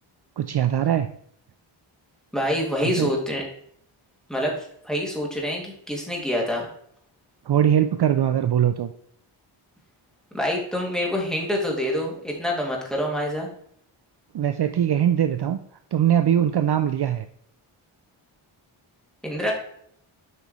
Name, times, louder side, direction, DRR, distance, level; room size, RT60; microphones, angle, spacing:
voice 1, 0.4-1.1 3.0-3.1 7.5-8.9 14.3-15.6 15.9-17.3, right 10 dB, 55° right, 9 dB, 0.5 m, -21 dB
voice 2, 2.3-3.4 4.3-4.5 4.8-6.7 10.3-13.5 19.2-19.5, left 1 dB, ahead, -2 dB, 2.3 m, -26 dB
8.1 x 5.4 x 3.1 m, 0.67 s
wide cardioid pair, 80°, 50 cm